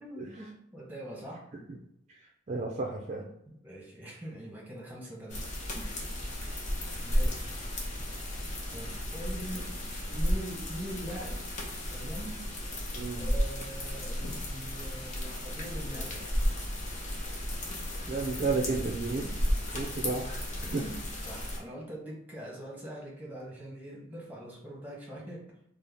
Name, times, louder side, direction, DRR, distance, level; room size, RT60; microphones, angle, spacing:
voice 1, 0.0-1.5 3.5-6.0 7.0-7.9 8.7-9.8 10.0-11.4 11.9-12.5 13.2-16.3 19.2-19.4 20.3-25.5, right 1 dB, 10° right, -3 dB, 1.0 m, -43 dB
voice 2, 2.5-3.3 13.0-13.2 18.1-19.2 19.7-20.8, right 3 dB, 35° right, -1 dB, 0.4 m, -32 dB
sound 1, 5.3-21.6, equal, 40° left, 0.8 m, -34 dB
4.0 x 2.0 x 3.4 m, 0.77 s
head